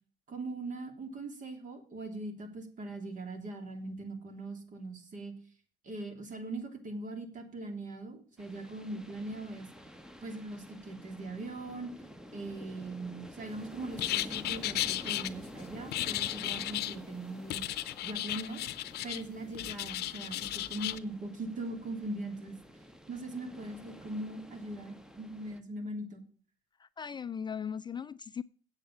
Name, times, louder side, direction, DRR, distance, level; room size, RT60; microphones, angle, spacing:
voice 1, 0.3-5.3 5.8-9.7 10.2-11.9 12.3-17.6 18.0-18.6 19.0-22.6 23.1-26.2, right 2 dB, 50° right, 3.1 m, -40 dB
sound 1, 8.4-25.6, equal, 5° right, 1.0 m, -50 dB
sound 2, 14.0-15.3 15.9-17.0 17.5-19.2 19.5-21.0, left 15 dB, 75° left, 0.7 m, -34 dB
voice 2, 26.8-28.4, left 7 dB, 25° left, 0.4 m, -38 dB
8.2 x 7.7 x 7.2 m
cardioid pair, 110°, 17 cm